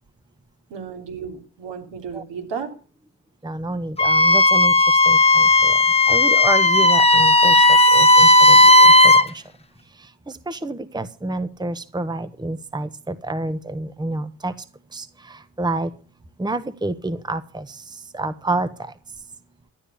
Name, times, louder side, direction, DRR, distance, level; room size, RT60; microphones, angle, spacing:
voice 1, 0.7-2.7, right 6 dB, 65° right, 3 dB, 3.5 m, -33 dB
voice 2, 3.4-5.8 6.1-9.4 9.9-14.5 14.9-15.9 16.4-18.9, right 2 dB, 10° right, 12 dB, 1.2 m, -29 dB
Wind instrument woodwind instrument, 4.0-9.3, left 2 dB, 15° left, 1.3 m, -13 dB
12.5 x 9.9 x 7.1 m, 0.38 s
hypercardioid pair, 55°, 45 cm